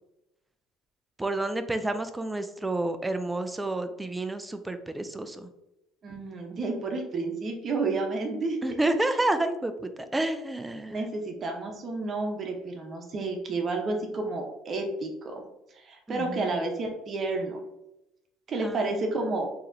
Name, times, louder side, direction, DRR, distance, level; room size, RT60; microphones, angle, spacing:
voice 1, 1.2-5.5 8.6-11.1 16.1-16.6 18.6-19.0, right 2 dB, 15° right, 9 dB, 0.4 m, -30 dB
voice 2, 6.0-8.7 10.9-15.4 15.8-17.6 18.5-19.5, right 3 dB, 45° right, 3 dB, 0.9 m, -31 dB
4.0 x 2.9 x 2.6 m, 0.89 s
supercardioid pair, 80°, 0 cm